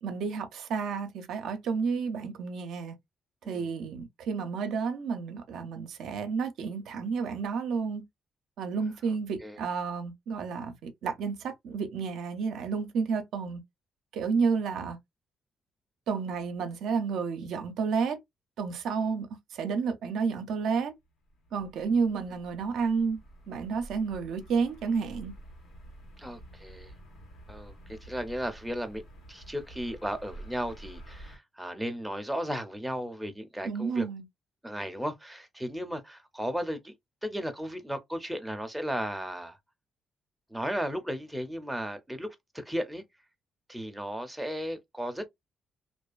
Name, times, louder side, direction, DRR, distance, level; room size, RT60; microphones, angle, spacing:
voice 1, 0.0-3.0 3.5-8.0 8.6-13.6 14.1-15.0 16.1-18.2 18.6-20.9 21.5-23.2 23.5-25.3 33.6-34.2, right 5 dB, 80° right, 0.5 m, -31 dB
sound 1, 21.1-31.4, right 1 dB, 85° left, 1.3 m, -49 dB
voice 2, 26.2-26.9 27.5-29.0 29.3-34.1 34.6-36.9 37.2-39.6 40.5-43.0 43.7-45.3, equal, 5° right, 0.6 m, -35 dB
2.5 x 2.3 x 2.3 m
cardioid pair, 90°, 0 cm